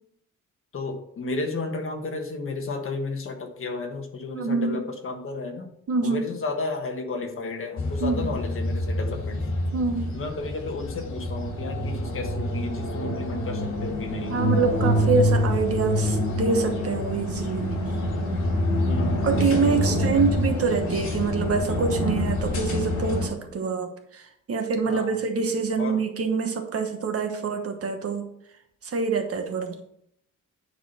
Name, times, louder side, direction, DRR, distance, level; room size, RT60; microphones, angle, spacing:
voice 1, 0.7-5.7 6.0-9.5 10.1-14.4 18.8-20.2 24.9-25.1 25.8-26.0, left 3 dB, 45° left, 3 dB, 1.4 m, -33 dB
voice 2, 4.3-4.8 5.9-6.3 8.0-8.3 9.7-10.1 14.3-17.7 19.2-28.3 28.8-29.8, right 4 dB, 50° right, 5 dB, 1.3 m, -26 dB
sound 1, 7.8-23.3, left 1 dB, 65° left, 2.7 m, -26 dB
9.9 x 4.2 x 5.7 m, 0.72 s
wide cardioid pair, 180°, 31 cm